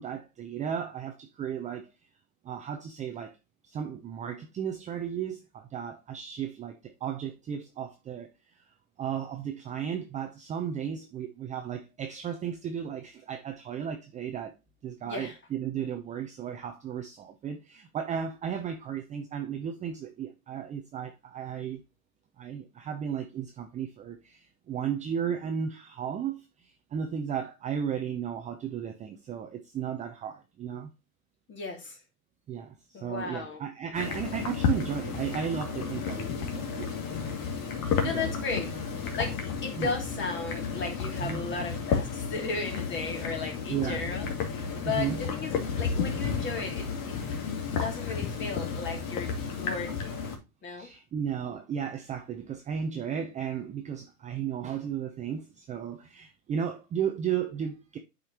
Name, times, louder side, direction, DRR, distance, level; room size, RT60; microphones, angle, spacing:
voice 1, 0.0-1.9 2.4-3.4 3.6-8.6 9.0-14.5 14.8-21.8 22.4-30.9 32.5-37.0 37.9-38.4 39.8-39.9 41.2-41.4 43.7-44.0 44.8-45.2 50.8-58.0, right 8 dB, 15° right, 0.6 m, -34 dB
voice 2, 15.0-15.4 31.5-32.0 32.9-33.6 37.8-38.7 39.2-47.2 47.7-50.9, left 4 dB, 25° left, 2.7 m, -35 dB
sound 1, 33.9-50.4, left 6 dB, 60° left, 2.3 m, -32 dB
8.3 x 5.2 x 2.9 m
hypercardioid pair, 120°, 46 cm